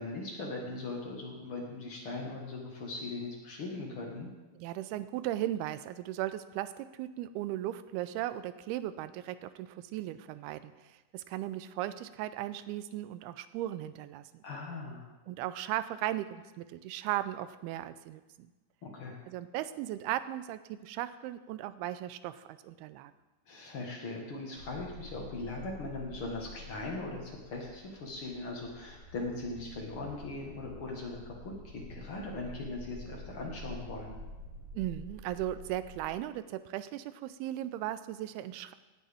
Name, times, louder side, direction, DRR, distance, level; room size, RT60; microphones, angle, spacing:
voice 1, 0.0-4.3 14.4-15.1 18.8-19.2 23.5-31.3 31.6-34.2, left 2 dB, 50° left, -1 dB, 1.8 m, -40 dB
voice 2, 4.6-14.4 15.3-18.2 19.3-23.1 34.7-38.7, right 13 dB, 90° right, 13 dB, 2.5 m, -37 dB
sound 1, 24.5-36.1, left 1 dB, 35° right, 4.0 m, -49 dB
17.5 x 9.1 x 3.5 m, 1.1 s
omnidirectional pair, 4.4 m